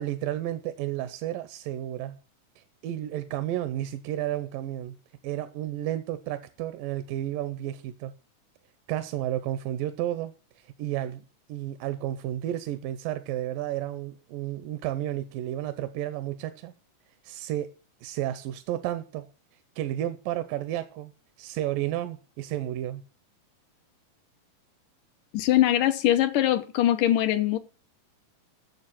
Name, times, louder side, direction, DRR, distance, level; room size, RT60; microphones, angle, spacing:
voice 1, 0.0-2.2 2.6-4.9 5.2-8.1 8.9-11.2 11.5-16.7 17.2-17.7 18.0-19.3 19.8-21.1 21.4-23.0, right 13 dB, 85° right, 2.4 m, -32 dB
voice 2, 25.3-27.6, left 13 dB, 75° left, 2.5 m, -22 dB
9.3 x 7.0 x 7.3 m
omnidirectional pair, 3.9 m